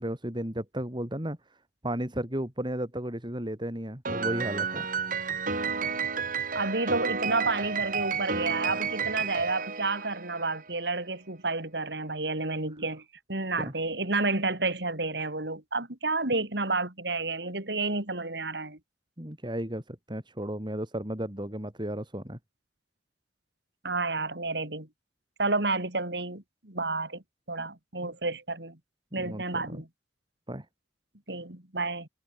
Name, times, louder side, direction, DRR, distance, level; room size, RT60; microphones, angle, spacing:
voice 1, 0.0-1.4 1.8-4.9 13.6-13.7 19.2-22.4 28.0-28.2 29.2-29.8 30.5-30.7, right 1 dB, 25° right, 4.2 m, -34 dB
Piano, 4.0-10.6, right 5 dB, 50° right, 6.4 m, -31 dB
voice 2, 6.5-13.0 13.3-18.8 23.8-24.9 25.4-27.2 27.5-28.8 29.1-29.9 31.3-32.1, right 3 dB, 70° right, 4.1 m, -30 dB
head